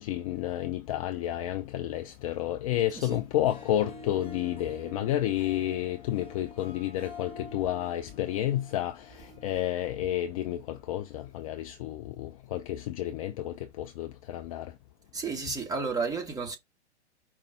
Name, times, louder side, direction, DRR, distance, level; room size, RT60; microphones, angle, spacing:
voice 1, 0.0-14.7, left 13 dB, 35° left, 0.4 m, -31 dB
Harp, 3.3-10.7, left 2 dB, 15° left, 1.3 m, -48 dB
voice 2, 15.1-16.6, right 4 dB, 10° right, 1.2 m, -32 dB
5.1 x 2.3 x 4.3 m
figure-of-eight pair, 110°, 34 cm